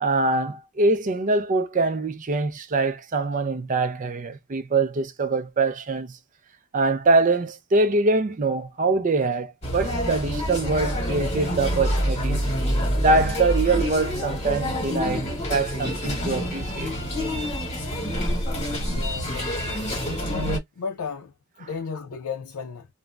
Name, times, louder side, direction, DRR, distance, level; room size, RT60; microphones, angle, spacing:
voice 1, 0.0-6.2 6.7-12.5 13.0-16.9, right 3 dB, 35° right, 0.4 m, -24 dB
sound 1, 9.6-20.6, equal, 30° left, 1.1 m, -27 dB
voice 2, 18.9-20.0 20.3-20.4 20.8-21.3 21.6-22.9, left 5 dB, 80° left, 0.4 m, -34 dB
2.5 x 2.1 x 3.2 m
head